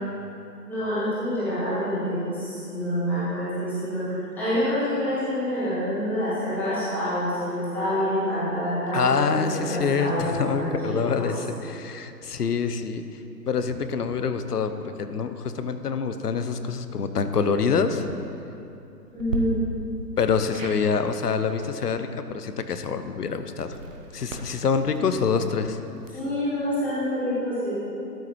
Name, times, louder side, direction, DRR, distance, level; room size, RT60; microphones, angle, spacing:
voice 1, 0.7-4.0 4.3-11.3 19.1-19.5 26.1-27.7, equal, 5° left, -13 dB, 1.4 m, -27 dB
voice 2, 8.9-13.0 13.5-14.7 15.0-18.0 20.2-22.1 22.3-23.8 24.1-25.8, left 5 dB, 70° left, 9 dB, 0.7 m, -26 dB
sound 1, 17.8-18.2 19.2-19.4 20.5-20.8 23.6-26.4, right 4 dB, 50° right, 1.0 m, -38 dB
12.5 x 7.2 x 3.1 m, 2.8 s
figure-of-eight pair, 150°, 50 cm